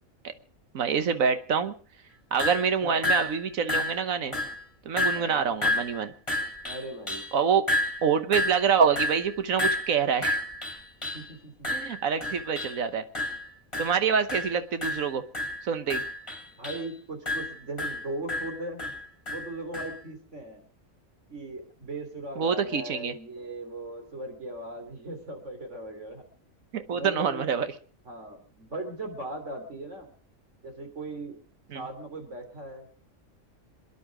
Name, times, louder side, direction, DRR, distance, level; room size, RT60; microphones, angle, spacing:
voice 1, 0.7-1.7 2.3-4.4 4.8-6.1 7.3-7.7 8.0-10.4 11.7-13.0 13.8-15.2 15.6-16.0 22.4-23.1 26.7-27.7 31.7-31.8, right 6 dB, 80° right, 11 dB, 1.4 m, -26 dB
sound 1, 2.4-2.7 3.0-3.4 3.7-4.1 4.3-4.6 5.0-5.4 5.6-7.4 7.7-11.3 11.6-12.8 13.1-13.5 13.7-14.0 14.3-14.6 14.8-16.9 17.3-20.0, left 1 dB, 20° left, 2.7 m, -30 dB
voice 2, 5.1-5.5 6.6-7.2 11.1-11.7 16.6-18.8 19.3-20.6 21.3-26.3 26.9-27.5 28.1-30.1 30.6-31.4 31.7-32.9, right 2 dB, 60° right, 5 dB, 3.6 m, -38 dB
27.0 x 10.0 x 4.9 m, 0.40 s
omnidirectional pair, 1.4 m